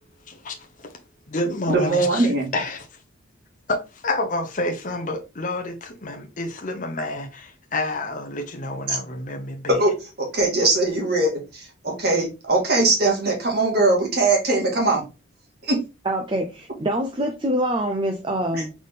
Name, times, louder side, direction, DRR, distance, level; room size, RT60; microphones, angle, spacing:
voice 1, 0.3-0.9 1.3-3.0 3.7-9.8, left 2 dB, 40° left, 0.7 m, -29 dB
voice 2, 1.7-2.5 8.9-9.0 9.7-15.0 15.6-15.8 18.5-18.6, right 2 dB, 50° right, 1.9 m, -21 dB
voice 3, 16.0-18.7, right 1 dB, 25° right, 0.5 m, -25 dB
4.0 x 3.6 x 3.6 m
head